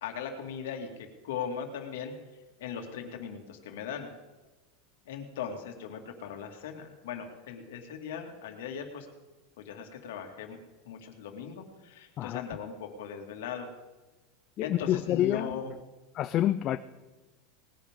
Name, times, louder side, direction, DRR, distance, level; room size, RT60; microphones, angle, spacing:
voice 1, 0.0-2.1 2.6-4.1 5.1-9.1 9.6-10.6 10.8-13.7 14.6-15.7, left 7 dB, 75° left, 4 dB, 2.2 m, -39 dB
voice 2, 14.6-15.6 16.1-16.8, left 12 dB, 30° left, 11 dB, 0.4 m, -28 dB
19.5 x 10.5 x 3.7 m, 1.2 s
supercardioid pair, 165°, 0 cm